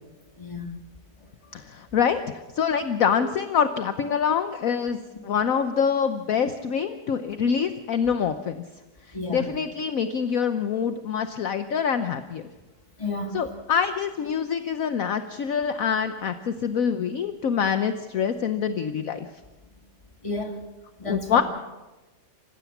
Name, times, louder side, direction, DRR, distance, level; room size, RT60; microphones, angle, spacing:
voice 1, 0.4-0.7 3.2-3.3 9.1-9.5 13.0-13.4 20.2-20.6 21.0-21.4, left 2 dB, 20° left, 4 dB, 2.3 m, -31 dB
voice 2, 1.5-2.2 2.5-5.0 5.2-8.6 9.1-12.4 13.3-19.3 21.0-21.4, left 7 dB, 60° left, 9 dB, 1.2 m, -25 dB
27.0 x 16.0 x 7.2 m, 1.1 s
omnidirectional pair, 1.8 m